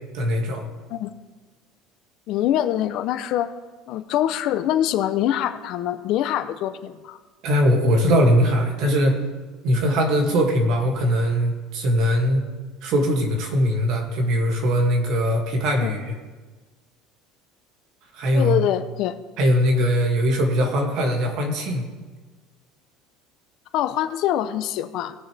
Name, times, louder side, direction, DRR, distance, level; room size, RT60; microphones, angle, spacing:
voice 1, 0.1-0.6 7.4-9.2 9.6-12.5 12.8-16.1 18.1-18.6 19.4-21.9, equal, 55° right, 2 dB, 2.3 m, -21 dB
voice 2, 2.3-3.5 3.9-7.2 15.8-15.9 18.3-19.2 23.7-25.1, left 12 dB, 55° left, 11 dB, 0.6 m, -24 dB
20.0 x 6.9 x 3.4 m, 1.3 s
cardioid pair, 145°, 0 cm